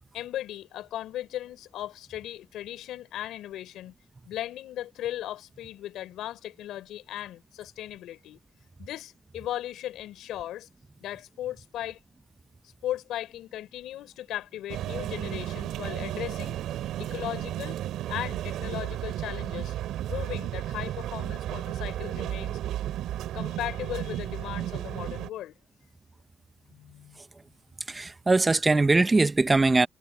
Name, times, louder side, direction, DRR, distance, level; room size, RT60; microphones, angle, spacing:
voice 1, 0.1-3.9 4.3-8.4 8.8-10.7 11.0-12.0 12.8-16.6 17.0-17.8 18.1-19.7 20.1-22.6 23.3-25.5 26.7-27.2, left 13 dB, 85° left, 5.9 m, -37 dB
sound 1, 14.7-25.3, right 12 dB, 85° right, 3.4 m, -33 dB
voice 2, 27.9-29.9, right 3 dB, 20° right, 1.0 m, -21 dB
cardioid pair, 90°, 0 cm